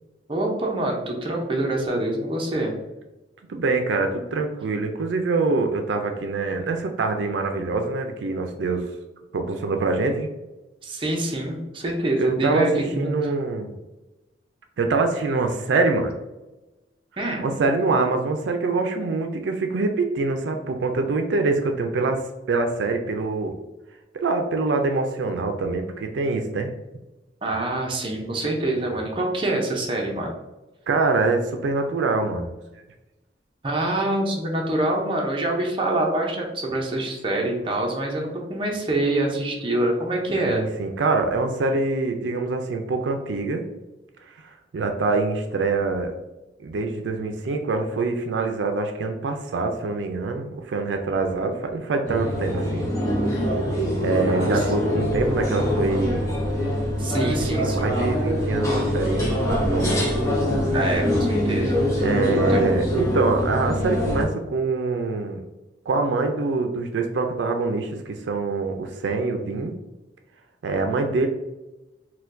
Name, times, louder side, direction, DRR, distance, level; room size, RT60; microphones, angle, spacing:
voice 1, 0.3-2.7 10.8-13.3 17.2-17.4 27.4-30.3 33.6-40.6 54.3-54.6 57.0-58.0 60.7-62.0 62.5-62.6, right 1 dB, 30° right, 0 dB, 0.6 m, -25 dB
voice 2, 3.5-8.9 9.3-10.3 12.2-13.7 14.8-16.1 17.4-22.2 22.5-23.5 24.1-26.7 30.9-32.5 40.5-43.6 44.7-46.1 46.6-52.9 54.0-56.3 57.1-57.2 57.6-60.1 62.0-65.4 65.9-69.7 70.6-71.3, right 3 dB, 80° right, 5 dB, 0.4 m, -24 dB
sound 1, 52.1-64.2, equal, 15° left, 0.8 m, -24 dB
4.2 x 2.2 x 2.5 m, 1.0 s
head